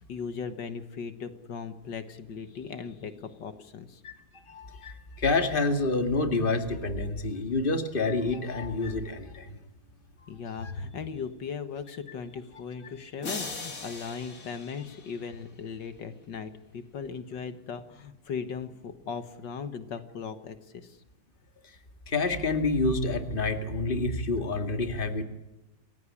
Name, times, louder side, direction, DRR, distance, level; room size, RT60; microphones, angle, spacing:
voice 1, 0.1-4.0 10.3-21.0, left 6 dB, 75° left, 10 dB, 2.0 m, -38 dB
voice 2, 4.5-9.5 10.2-10.3 10.6-10.7 22.1-25.2, left 3 dB, 30° left, 8 dB, 2.2 m, -28 dB
sound 1, 13.2-15.6, left 3 dB, 50° left, 3.4 m, -40 dB
28.5 x 16.5 x 8.6 m, 1.0 s
omnidirectional pair, 2.0 m